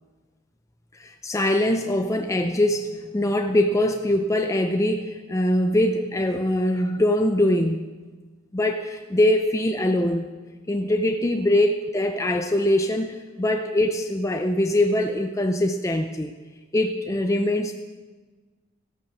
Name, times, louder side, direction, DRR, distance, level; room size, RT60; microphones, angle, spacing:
voice 1, 0.9-7.9 8.5-10.3 10.7-16.3 16.7-17.7, left 1 dB, 15° left, 5 dB, 0.4 m, -23 dB
13.5 x 9.1 x 6.0 m, 1.4 s
head